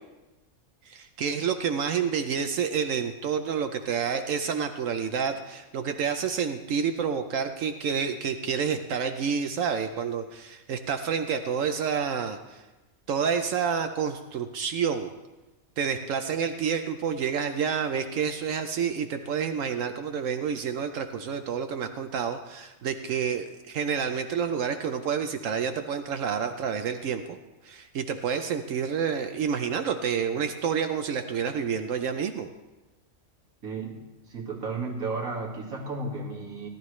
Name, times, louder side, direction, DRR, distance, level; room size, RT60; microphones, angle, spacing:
voice 1, 0.9-12.6 13.1-15.1 15.8-27.4 27.6-32.5, right 7 dB, 70° right, 7 dB, 1.0 m, -29 dB
voice 2, 33.6-36.7, right 3 dB, 90° right, -2 dB, 2.3 m, -34 dB
17.5 x 11.5 x 3.1 m, 1.1 s
omnidirectional pair, 1.5 m